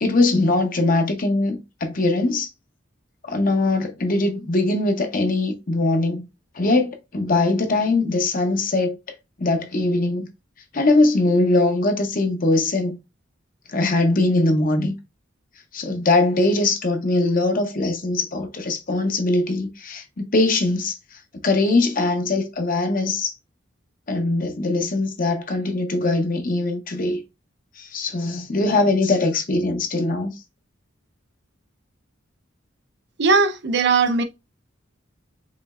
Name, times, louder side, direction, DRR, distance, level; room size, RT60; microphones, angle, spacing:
voice 1, 0.0-2.5 3.2-6.3 6.5-9.0 9.4-10.3 10.7-13.0 13.7-15.0 15.7-23.3 24.1-27.2 27.8-30.3, left 2 dB, 45° left, 0.7 m, -21 dB
voice 2, 33.2-34.2, right 4 dB, 55° right, 0.6 m, -18 dB
5.0 x 3.2 x 2.3 m
head